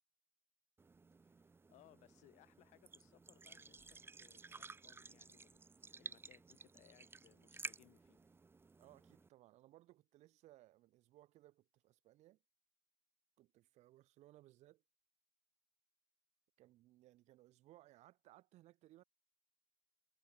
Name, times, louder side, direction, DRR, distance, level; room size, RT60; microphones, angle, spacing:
sound 1, 0.8-9.3, right 4 dB, 20° right, 0.8 m, -54 dB
voice 1, 1.2-5.6 6.0-8.2, left 17 dB, 85° left, 2.5 m, -68 dB
voice 2, 8.8-12.4 13.4-14.8 16.6-19.0, right 16 dB, 75° right, 0.7 m, -64 dB
cardioid pair, 125°, 12 cm